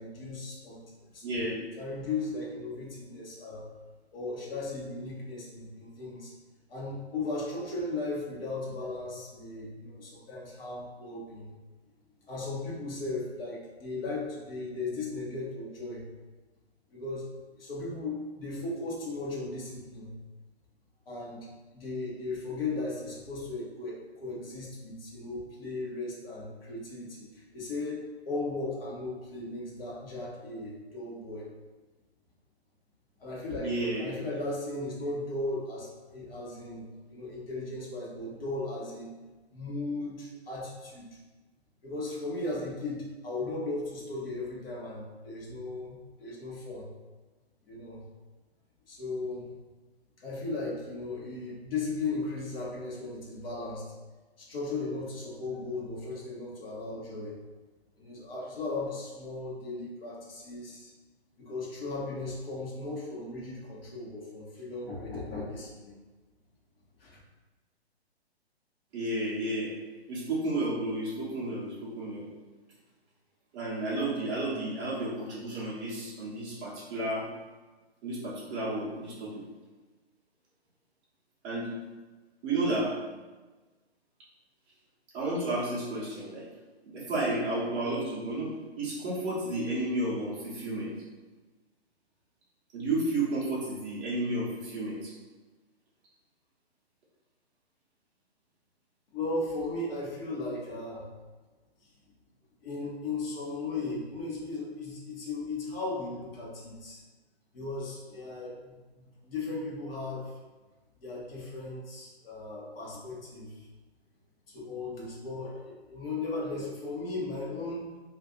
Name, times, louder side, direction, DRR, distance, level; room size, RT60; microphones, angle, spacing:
voice 1, 0.0-1.2 1.8-3.7 4.1-6.3 6.7-11.5 12.3-16.1 16.9-17.3 17.5-20.2 21.1-21.4 21.7-31.5 33.2-33.7 34.0-39.1 39.5-41.0 41.8-46.9 47.6-48.0 48.9-49.5 50.2-53.9 54.4-57.4 58.0-60.9 61.4-66.0 67.0-67.2 99.1-101.1 101.8-101.9 102.6-107.0 107.5-110.4 111.0-113.7 114.5-117.9, left 2 dB, 60° left, -5 dB, 1.2 m, -36 dB
voice 2, 1.2-1.6 33.6-34.1 68.9-69.7 70.1-72.3 73.5-77.3 78.0-79.4 81.4-81.7 82.4-83.0 85.1-86.5 86.9-88.5 88.8-90.9 92.7-95.1, right 2 dB, 15° right, -7 dB, 0.6 m, -32 dB
2.5 x 2.4 x 3.7 m, 1.2 s
hypercardioid pair, 145°, 33 cm